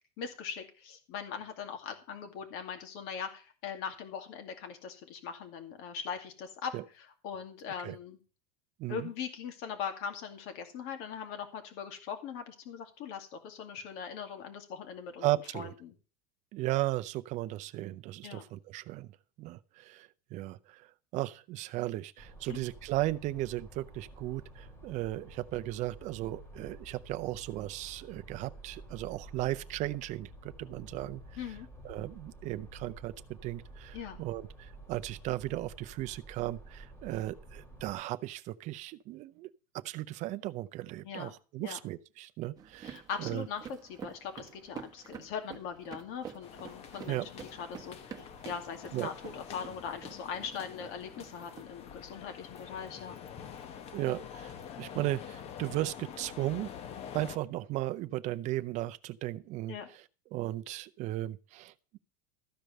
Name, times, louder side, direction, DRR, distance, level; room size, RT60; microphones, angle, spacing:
voice 1, 0.2-8.2 8.9-15.3 15.5-15.9 18.2-18.4 22.5-22.6 31.4-31.7 33.9-34.2 41.0-41.3 41.6-41.8 42.8-53.2 59.7-59.9, left 7 dB, 50° left, 2.4 m, -41 dB
voice 2, 15.2-15.7 16.5-19.1 19.4-31.2 31.8-33.1 33.4-39.5 39.7-43.5 47.1-47.3 48.9-49.1 53.9-56.7 57.1-59.7 60.3-62.0, right 16 dB, 35° right, 0.6 m, -36 dB
sound 1, 22.2-37.9, right 2 dB, 10° left, 3.5 m, -51 dB
sound 2, 42.6-51.6, right 8 dB, 20° right, 1.3 m, -49 dB
sound 3, 46.4-57.4, left 8 dB, 30° left, 1.0 m, -46 dB
14.0 x 5.1 x 7.7 m
supercardioid pair, 165°, 21 cm